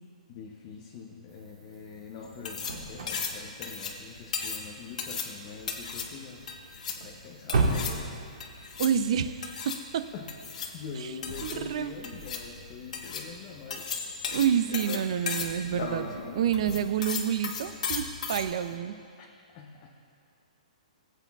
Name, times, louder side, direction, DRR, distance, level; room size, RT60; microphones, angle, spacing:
voice 1, 0.3-6.4 7.0-8.1 10.1-10.3 10.7-13.9 19.2-19.3 19.5-19.9, left 5 dB, 30° left, -1 dB, 0.8 m, -44 dB
sound 1, 1.3-18.8, right 3 dB, 65° right, 1.5 m, -39 dB
sound 2, 2.2-18.5, left 5 dB, 70° left, 1.2 m, -36 dB
voice 2, 8.8-10.0 11.4-11.9 14.3-16.1 16.3-18.9, right 9 dB, 50° right, 11 dB, 0.4 m, -28 dB
19.0 x 8.2 x 2.3 m, 2.3 s
hypercardioid pair, 165°, 4 cm